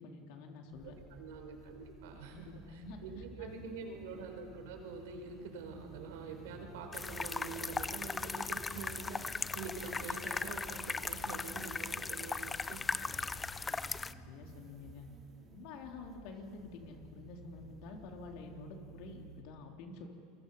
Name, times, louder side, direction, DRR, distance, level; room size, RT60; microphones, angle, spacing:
voice 1, 0.0-0.9 2.1-3.0 3.4-3.8 13.7-13.8 14.1-15.1 15.5-20.1, left 3 dB, 65° left, 2 dB, 3.8 m, -49 dB
sound 1, 0.7-19.4, right 3 dB, 35° right, 4.2 m, -54 dB
voice 2, 0.8-12.8, right 4 dB, 75° right, 4 dB, 4.6 m, -46 dB
sound 2, 6.9-14.1, left 4 dB, 20° left, 0.6 m, -38 dB
28.0 x 23.0 x 5.7 m, 2.4 s
hypercardioid pair, 95°, 0 cm